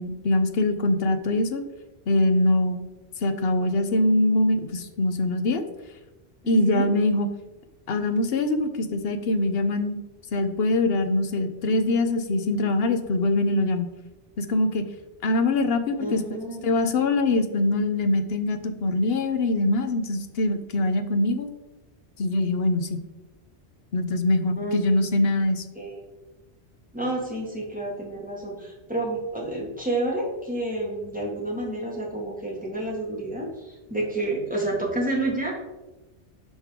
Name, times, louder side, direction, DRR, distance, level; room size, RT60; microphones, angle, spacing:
voice 1, 0.0-1.6 2.1-2.8 3.2-5.6 6.5-7.3 7.9-10.0 10.3-13.9 14.4-14.8 15.2-16.2 16.6-21.5 22.2-23.0 23.9-25.6, left 2 dB, 60° left, 8 dB, 1.0 m, -23 dB
voice 2, 6.4-6.9 16.0-17.1 24.5-24.8 25.8-26.1 26.9-35.5, right 1 dB, 5° right, -3 dB, 2.0 m, -30 dB
10.5 x 5.4 x 3.7 m, 1.1 s
omnidirectional pair, 1.2 m